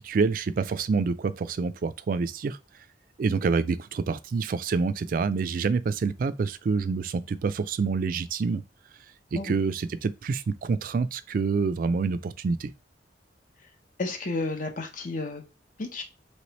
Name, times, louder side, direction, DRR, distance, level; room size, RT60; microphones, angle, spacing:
voice 1, 0.0-2.6 3.2-8.6 9.3-12.7, right 4 dB, 50° right, 0.3 m, -27 dB
voice 2, 14.0-15.4 15.8-16.0, left 2 dB, 45° left, 0.9 m, -31 dB
3.3 x 3.2 x 4.0 m
head